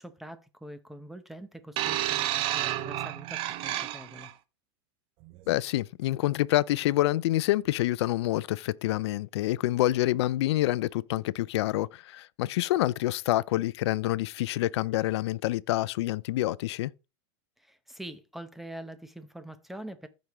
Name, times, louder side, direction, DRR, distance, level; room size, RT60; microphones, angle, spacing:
voice 1, 0.0-4.3 17.6-20.1, right 1 dB, ahead, 0.8 m, -44 dB
sound 1, 1.8-4.3 5.2-5.4, right 14 dB, 40° right, 0.7 m, -30 dB
voice 2, 5.5-16.9, left 16 dB, 70° left, 0.5 m, -27 dB
14.5 x 5.2 x 3.1 m
supercardioid pair, 145°, 14 cm